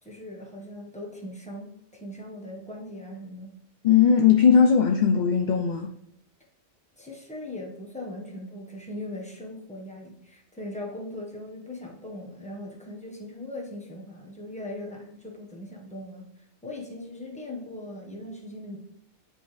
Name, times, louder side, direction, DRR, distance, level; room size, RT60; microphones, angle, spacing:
voice 1, 0.0-3.6 7.0-16.3 16.6-18.8, left 1 dB, 5° left, -1 dB, 1.1 m, -39 dB
voice 2, 3.8-5.9, left 7 dB, 60° left, 4 dB, 0.5 m, -19 dB
8.6 x 5.3 x 3.2 m, 0.80 s
omnidirectional pair, 1.2 m